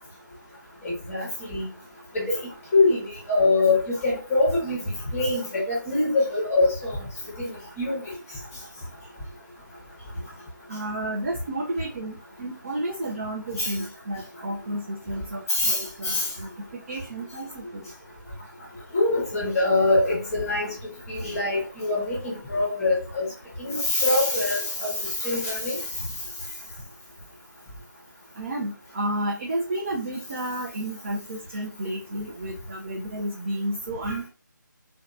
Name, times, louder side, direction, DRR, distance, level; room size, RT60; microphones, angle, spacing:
voice 1, 0.8-1.7 2.1-7.0 7.4-8.0 13.6-13.8 15.5-16.3 18.9-20.7 21.1-23.3 23.6-25.8 34.0-34.3, left 2 dB, 10° left, -5 dB, 0.8 m, -24 dB
voice 2, 10.7-17.8 28.4-34.3, right 1 dB, 40° right, -1 dB, 0.5 m, -32 dB
2.7 x 2.2 x 2.5 m, 0.36 s
figure-of-eight pair, 160°, 11 cm